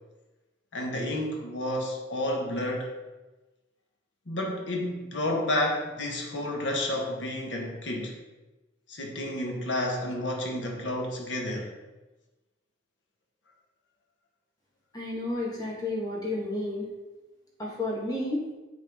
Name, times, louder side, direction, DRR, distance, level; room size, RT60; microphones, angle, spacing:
voice 1, 0.7-2.9 4.3-8.2 8.9-11.7, left 1 dB, 80° left, 1 dB, 1.2 m, -30 dB
voice 2, 14.9-16.9 17.6-18.4, left 2 dB, 20° left, -4 dB, 1.5 m, -31 dB
9.0 x 3.6 x 3.5 m, 1.1 s
head